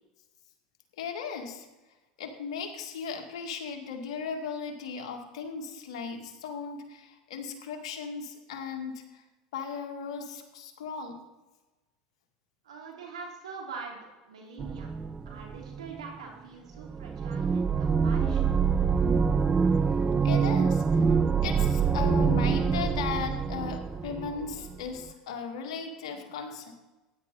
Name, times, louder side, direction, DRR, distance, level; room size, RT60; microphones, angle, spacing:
voice 1, 1.0-1.7 2.2-9.2 9.5-11.2 19.4-26.7, left 6 dB, 75° left, 4 dB, 2.2 m, -37 dB
voice 2, 12.6-14.0 14.2-14.9 15.2-18.6, right 5 dB, 90° right, 1 dB, 3.1 m, -43 dB
sound 1, 14.6-16.2 16.8-24.8, right 6 dB, 25° right, 0.6 m, -26 dB
15.5 x 10.5 x 4.2 m, 1.1 s
hypercardioid pair, 85°, 3 cm